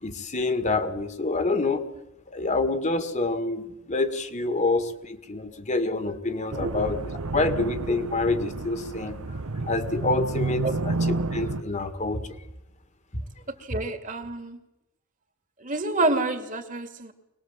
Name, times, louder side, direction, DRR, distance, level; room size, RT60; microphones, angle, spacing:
voice 1, 0.0-1.8 2.3-7.0 7.3-12.2, left 3 dB, 35° left, 9 dB, 1.8 m, -27 dB
sound 1, 6.5-11.6, right 3 dB, 85° right, 1.0 m, -30 dB
voice 2, 13.6-14.6 15.6-17.1, right 2 dB, 35° right, 7 dB, 2.3 m, -28 dB
24.5 x 20.0 x 7.4 m, 0.90 s
head